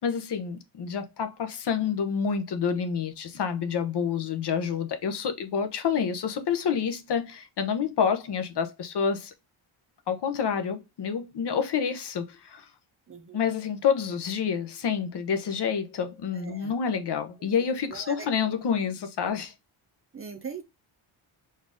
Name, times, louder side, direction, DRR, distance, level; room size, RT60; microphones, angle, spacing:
voice 1, 0.0-9.3 10.1-12.7 13.3-19.5, left 7 dB, 55° left, 0.8 m, -28 dB
voice 2, 13.1-13.4 16.3-16.7 17.9-18.6 20.1-20.6, right 5 dB, 25° right, 0.6 m, -41 dB
4.2 x 2.5 x 3.5 m
wide cardioid pair, 145°, 48 cm